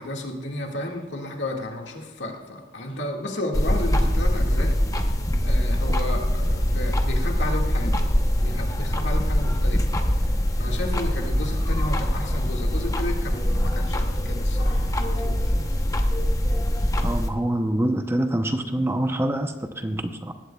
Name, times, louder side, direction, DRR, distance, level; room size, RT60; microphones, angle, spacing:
voice 1, 0.0-4.8 5.4-8.1 8.4-9.8 10.6-15.5, left 1 dB, 85° left, 1 dB, 1.9 m, -33 dB
sound 1, 3.5-17.3, equal, 20° left, 0.8 m, -23 dB
voice 2, 17.0-20.3, right 1 dB, 15° right, 7 dB, 0.7 m, -25 dB
19.5 x 15.5 x 2.3 m, 1.2 s
head